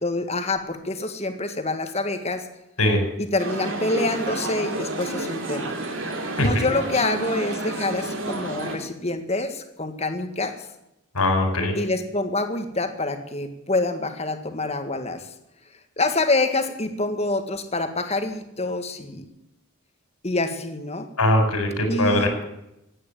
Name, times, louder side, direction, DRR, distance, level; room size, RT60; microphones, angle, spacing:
voice 1, 0.0-2.5 3.2-5.7 6.4-10.7 11.7-15.3 16.0-19.2 20.2-21.1 21.9-22.5, left 2 dB, 30° left, 7 dB, 1.8 m, -26 dB
sound 1, 3.4-8.8, right 2 dB, 60° right, 3.1 m, -30 dB
voice 2, 11.1-11.7 21.2-22.3, left 1 dB, 85° left, 5 dB, 4.9 m, -20 dB
16.0 x 10.0 x 8.9 m, 0.85 s
head